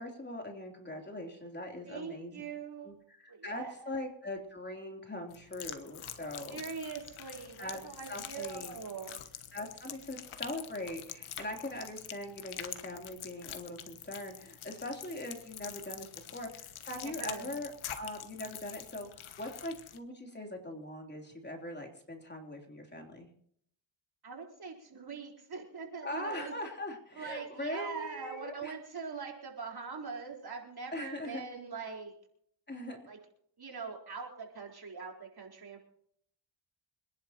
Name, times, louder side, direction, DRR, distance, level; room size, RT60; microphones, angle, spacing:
voice 1, 0.0-2.3 2.8-6.6 7.6-7.8 8.1-8.8 9.5-23.3 26.0-28.7 30.9-31.4 32.7-33.0, left 1 dB, 20° left, 2 dB, 3.3 m, -41 dB
voice 2, 1.9-3.0 3.3-4.0 6.5-9.2 17.0-17.5 24.2-26.5 27.1-32.1 33.1-33.2 33.6-35.8, right 5 dB, 50° right, 1 dB, 4.2 m, -42 dB
sound 1, 5.3-20.0, left 10 dB, 85° left, 1.3 m, -46 dB
26.5 x 11.0 x 2.9 m, 0.65 s
cardioid pair, 75°, 48 cm